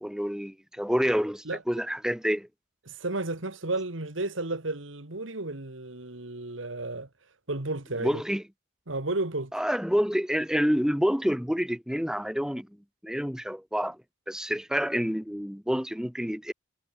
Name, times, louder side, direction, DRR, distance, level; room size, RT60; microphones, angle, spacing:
voice 1, 0.0-2.5 8.0-8.4 9.5-12.7 13.0-14.0 14.3-16.5, equal, 5° right, 1.4 m, -28 dB
voice 2, 2.9-7.1 7.5-8.2 8.9-9.5, right 2 dB, 80° right, 2.3 m, -32 dB
head